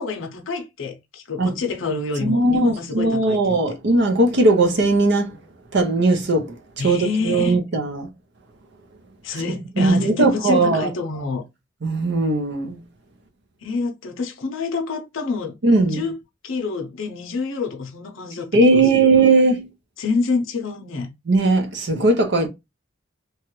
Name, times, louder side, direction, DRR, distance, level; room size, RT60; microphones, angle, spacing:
voice 1, 0.0-3.4 3.7-3.8 6.8-7.6 9.2-11.4 13.6-15.6 15.8-16.2 16.4-19.3 20.0-21.1, left 4 dB, 70° left, 0.6 m, -27 dB
voice 2, 2.2-5.3 5.7-6.5 6.8-7.0 7.2-8.1 9.8-10.9 11.8-12.8 15.6-16.0 18.5-19.7 21.3-22.5, right 2 dB, 60° right, 0.7 m, -18 dB
2.9 x 2.3 x 3.0 m
head